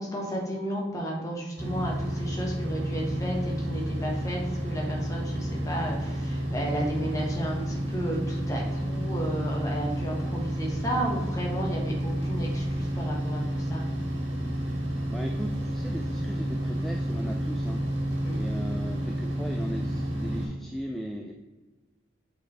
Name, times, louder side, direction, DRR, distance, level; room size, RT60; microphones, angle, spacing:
voice 1, 0.0-13.8 18.2-18.4, right 1 dB, 15° left, -2 dB, 1.3 m, -33 dB
sound 1, 1.6-20.5, equal, 60° right, 1.8 m, -30 dB
voice 2, 15.1-17.8 18.3-21.3, equal, ahead, 1 dB, 0.3 m, -37 dB
7.6 x 4.1 x 3.2 m, 1.2 s
head